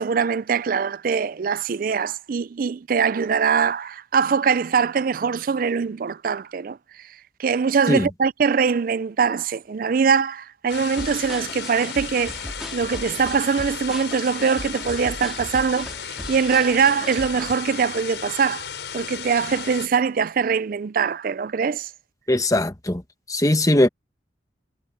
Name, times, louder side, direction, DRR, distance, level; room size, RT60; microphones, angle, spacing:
voice 1, 0.0-7.1 7.4-12.4 12.7-15.9 16.3-18.7 18.9-21.9, right 6 dB, 50° right, 0.4 m, -22 dB
sound 1, 10.7-19.9, left 8 dB, 75° left, 5.1 m, -35 dB
sound 2, 10.9-17.5, equal, ahead, 2.6 m, -38 dB
voice 2, 22.3-23.0 23.3-23.9, left 1 dB, 20° left, 1.2 m, -19 dB
head